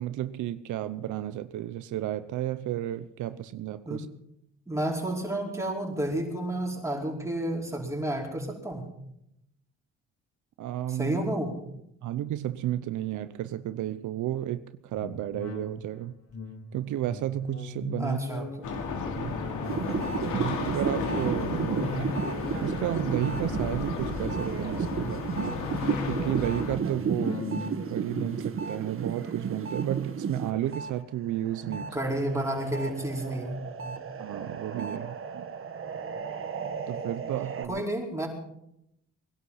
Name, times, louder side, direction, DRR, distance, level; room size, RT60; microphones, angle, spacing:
voice 1, 0.0-4.1 10.6-11.2 12.0-16.2 16.7-18.2 19.2-19.4 20.3-22.2 22.6-25.3 26.0-27.4 27.9-31.8 34.2-35.5 36.9-37.8, right 12 dB, 75° right, 13 dB, 0.7 m, -32 dB
voice 2, 4.7-8.8 10.9-11.6 18.0-18.7 31.6-33.9 37.7-38.3, right 1 dB, 10° right, -1 dB, 4.9 m, -31 dB
sound 1, 14.9-30.7 31.1-31.2, left 4 dB, 55° left, 2.8 m, -40 dB
sound 2, 18.6-26.8, left 4 dB, 80° left, 2.9 m, -34 dB
sound 3, 19.6-30.9 31.3-37.7, right 6 dB, 45° right, 1.6 m, -34 dB
20.5 x 11.5 x 5.7 m, 0.79 s
cardioid pair, 90°, 30 cm